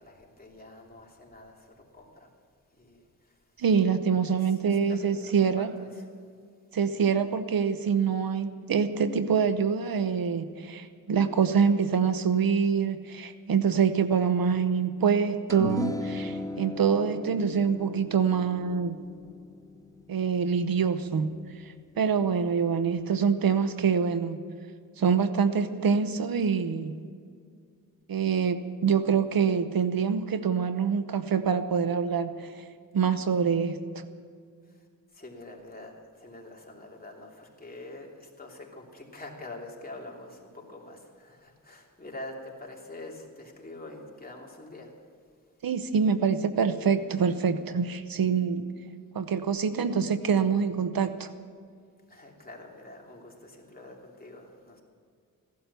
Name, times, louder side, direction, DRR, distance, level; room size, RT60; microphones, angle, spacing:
voice 1, 0.0-2.3 2.7-3.4 4.2-6.1 34.6-44.9 52.1-54.8, left 2 dB, 25° left, -1 dB, 3.0 m, -46 dB
voice 2, 3.6-5.7 6.7-19.0 20.1-21.4 21.6-24.4 25.0-27.0 28.1-32.7 32.9-34.0 45.6-48.7 49.1-51.3, right 6 dB, 80° right, 11 dB, 0.9 m, -25 dB
sound 1, 15.5-22.0, left 2 dB, 10° left, 0.6 m, -37 dB
16.0 x 11.5 x 6.9 m, 2.1 s
wide cardioid pair, 80°, 35 cm